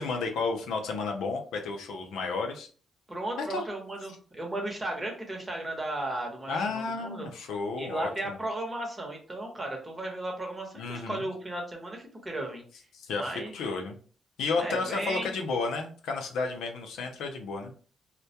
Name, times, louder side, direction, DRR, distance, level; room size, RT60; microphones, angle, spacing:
voice 1, 0.0-2.7 3.4-3.6 6.5-8.4 10.8-11.2 12.9-14.0 14.4-17.7, left 4 dB, 85° left, 3 dB, 0.4 m, -32 dB
voice 2, 3.1-7.3 7.8-12.6 13.2-13.5 14.6-15.3, right 1 dB, 25° right, 1 dB, 0.9 m, -35 dB
2.2 x 2.1 x 2.7 m, 0.42 s
cardioid pair, 70°, 0 cm